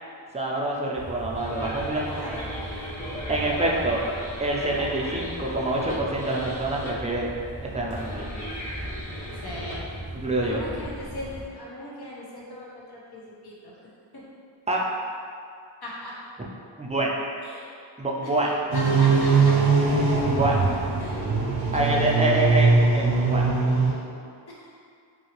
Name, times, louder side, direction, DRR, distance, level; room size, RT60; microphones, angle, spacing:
voice 1, 0.3-2.1 3.3-4.0 4.4-7.3 7.6-8.3 10.2-10.6 14.7-14.9 16.8-17.1 18.0-18.5 20.3-20.6 21.7-23.6, right 2 dB, 15° right, -3 dB, 0.5 m, -26 dB
sound 1, 0.9-11.4, equal, 15° left, 1.0 m, -35 dB
voice 2, 2.0-2.5 9.4-9.8 10.4-13.8 14.1-14.2 15.8-16.1 17.4-17.7 18.2-18.4 18.7-19.5 21.0-21.2 24.5-24.7, left 1 dB, 55° left, -5 dB, 0.9 m, -39 dB
sound 2, 18.7-23.9, right 4 dB, 50° right, 0.7 m, -21 dB
2.8 x 2.7 x 2.9 m, 2.3 s
cardioid pair, 45°, 47 cm